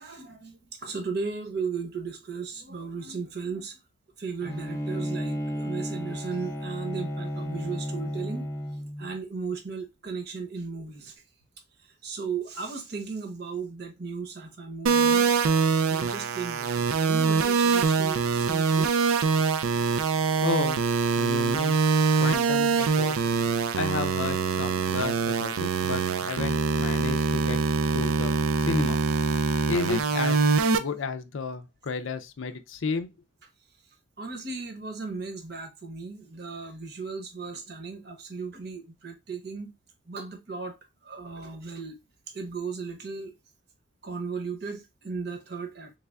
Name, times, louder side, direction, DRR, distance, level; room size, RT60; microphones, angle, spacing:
voice 1, 0.0-3.8 4.2-8.5 9.0-11.1 12.0-15.3 15.8-18.9 34.2-39.7 40.1-40.8 41.0-42.0 42.3-43.3 44.0-45.9, right 4 dB, 50° right, 0.9 m, -36 dB
Bowed string instrument, 4.4-9.1, equal, 15° left, 0.7 m, -33 dB
sound 1, 14.9-30.8, right 5 dB, 90° right, 0.4 m, -24 dB
voice 2, 20.4-20.9 21.2-21.8 22.2-23.2 23.8-27.6 27.9-29.0 29.7-30.4 30.8-33.1, left 4 dB, 65° left, 0.4 m, -32 dB
3.3 x 3.3 x 2.3 m
head